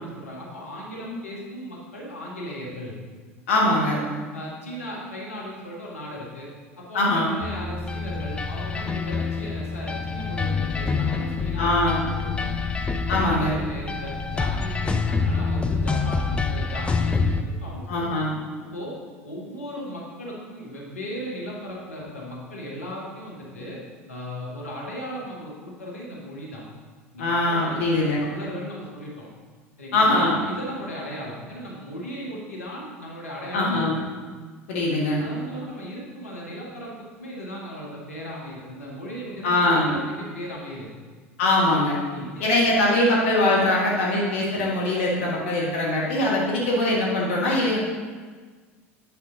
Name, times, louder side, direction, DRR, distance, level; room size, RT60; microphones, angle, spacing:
voice 1, 0.0-3.0 3.9-4.0 4.3-6.5 6.8-12.5 13.1-18.2 18.7-19.0 19.2-23.8 24.1-26.6 27.1-29.3 29.8-33.8 35.2-40.9 42.1-42.7, equal, 85° left, -4 dB, 1.6 m, -37 dB
voice 2, 3.5-4.0 6.9-7.3 11.6-12.0 13.1-13.6 17.9-18.3 27.2-28.2 29.9-30.4 33.5-34.0 34.7-35.2 39.4-40.0 41.4-42.0 42.4-47.8, left 1 dB, 65° left, -4 dB, 1.4 m, -22 dB
sound 1, 7.4-17.4, left 4 dB, 15° left, 0.6 m, -26 dB
9.7 x 5.5 x 3.9 m, 1.5 s
figure-of-eight pair, 70°, 7 cm